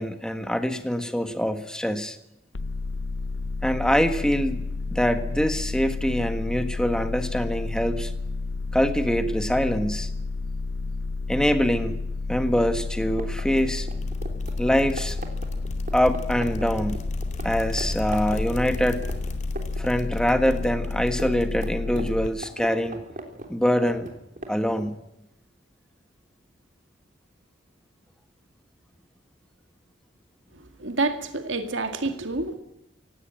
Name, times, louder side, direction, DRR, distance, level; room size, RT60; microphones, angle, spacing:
voice 1, 0.0-2.2 3.6-4.6 4.9-8.1 8.7-10.1 11.3-12.0 12.3-13.9 14.6-15.2 15.9-17.0 17.4-19.0 19.8-23.0 23.5-24.1 24.5-24.9, equal, 5° left, 9 dB, 1.5 m, -24 dB
sound 1, 2.5-22.3, left 3 dB, 75° left, 0.7 m, -31 dB
sound 2, 12.8-17.5 17.8-17.9 18.1-19.9 20.1-24.9, right 2 dB, 40° right, 3.4 m, -38 dB
sound 3, 13.5-22.7, left 1 dB, 35° left, 2.4 m, -39 dB
voice 2, 30.5-32.5, right 3 dB, 75° right, 7 dB, 2.1 m, -28 dB
17.5 x 17.0 x 9.0 m, 0.87 s
head